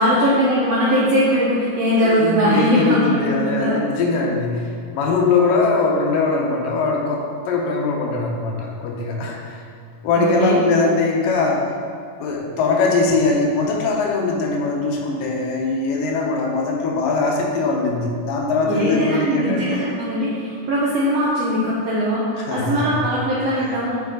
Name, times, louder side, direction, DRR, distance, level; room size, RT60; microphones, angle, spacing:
voice 1, 0.0-3.8 10.2-10.6 18.6-24.0, equal, 75° right, -6 dB, 1.5 m, -20 dB
voice 2, 2.1-9.6 10.0-11.7 12.2-19.8 22.4-22.9, left 3 dB, 80° left, 0 dB, 2.5 m, -21 dB
7.0 x 5.5 x 3.8 m, 2.4 s
omnidirectional pair, 4.0 m